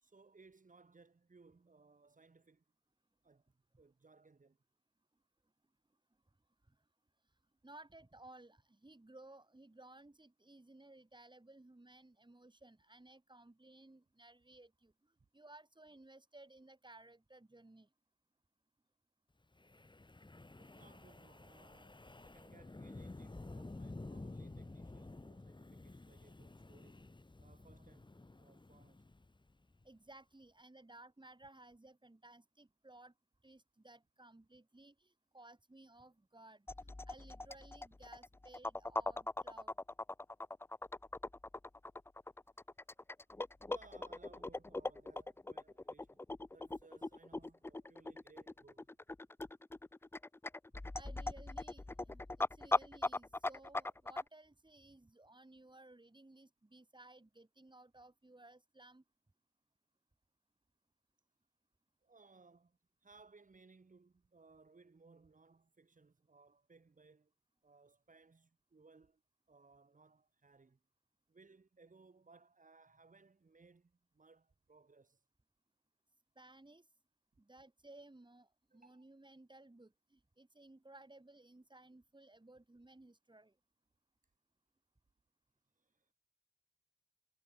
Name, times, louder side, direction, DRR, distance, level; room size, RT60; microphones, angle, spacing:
voice 1, 0.0-2.6 3.2-4.6 20.6-27.0 27.4-29.1 43.6-46.2 46.5-48.9 62.0-67.3 67.6-69.2 69.5-70.8 71.3-75.2 78.7-79.1 85.8-86.1, right 4 dB, 75° right, 2.1 m, -64 dB
voice 2, 7.6-17.9 29.8-33.1 33.4-39.7 50.9-59.0 76.4-76.9 77.4-83.6, right 2 dB, 35° right, 3.6 m, -59 dB
Wind, 19.6-29.8, left 2 dB, 35° left, 1.3 m, -52 dB
sound 1, 36.7-54.2, left 2 dB, 15° left, 0.3 m, -40 dB
wide cardioid pair, 45°, 14 cm